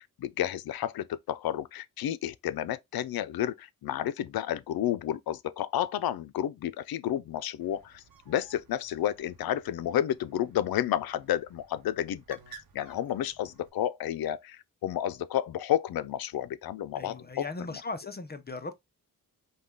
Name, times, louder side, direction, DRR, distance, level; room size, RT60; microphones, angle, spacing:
voice 1, 0.0-17.5 17.7-17.8, left 11 dB, 85° left, 0.5 m, -31 dB
Bird, 7.6-13.7, right 5 dB, 75° right, 0.9 m, -56 dB
voice 2, 17.0-18.7, left 3 dB, 30° left, 0.6 m, -38 dB
5.3 x 2.3 x 3.7 m
cardioid pair, 85°, 35 cm